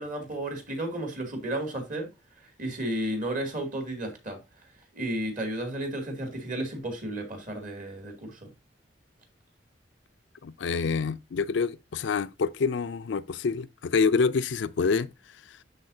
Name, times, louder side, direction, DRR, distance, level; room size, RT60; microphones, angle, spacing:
voice 1, 0.0-2.1 2.6-4.4 4.9-8.5, right 1 dB, 45° right, 2.5 m, -33 dB
voice 2, 10.4-15.6, left 5 dB, 75° left, 0.4 m, -27 dB
12.0 x 4.2 x 2.7 m
head